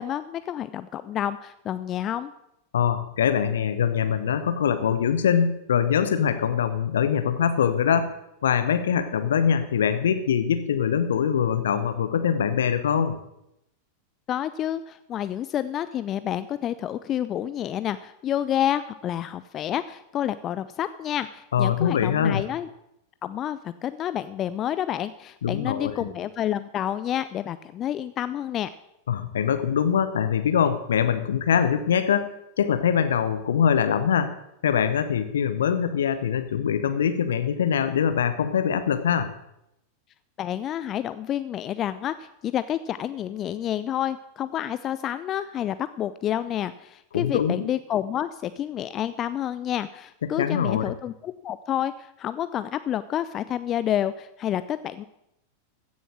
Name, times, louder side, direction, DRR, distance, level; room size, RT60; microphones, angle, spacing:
voice 1, 0.0-2.3 14.3-22.7 23.2-28.7 40.4-55.0, left 11 dB, 30° left, 14 dB, 0.4 m, -29 dB
voice 2, 2.7-8.1 8.4-13.2 21.5-22.4 25.4-26.1 29.1-32.3 32.6-34.3 34.6-39.3 47.1-47.7 50.4-50.9, left 8 dB, 65° left, 10 dB, 1.0 m, -23 dB
15.0 x 7.1 x 6.2 m, 0.82 s
figure-of-eight pair, 90°, 0 cm